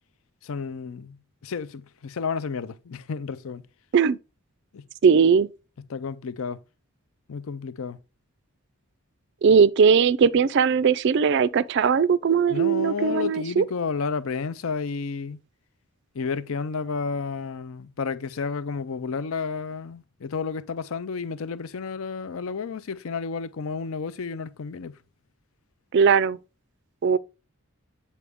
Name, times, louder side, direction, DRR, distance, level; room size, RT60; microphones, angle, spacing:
voice 1, 0.4-3.6 4.7-4.9 5.9-6.6 7.3-8.0 12.5-15.4 16.1-25.0, left 5 dB, 70° left, 0.5 m, -31 dB
voice 2, 5.0-5.5 9.4-13.6 25.9-26.4 27.0-27.2, right 6 dB, 50° right, 0.3 m, -19 dB
8.3 x 4.2 x 3.5 m
head